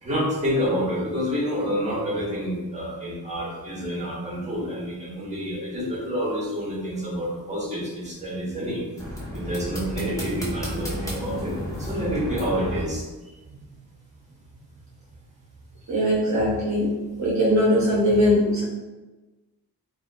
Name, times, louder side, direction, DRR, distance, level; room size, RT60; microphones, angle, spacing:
voice 1, 0.0-8.8 9.3-11.5 11.8-13.0, equal, 20° right, -5 dB, 1.0 m, -28 dB
sound 1, 9.0-12.8, equal, 10° left, 0.9 m, -32 dB
voice 2, 15.9-16.9 17.2-18.6, equal, 45° right, -6 dB, 0.7 m, -20 dB
2.7 x 2.4 x 2.5 m, 1.2 s
cardioid pair, 60°, 38 cm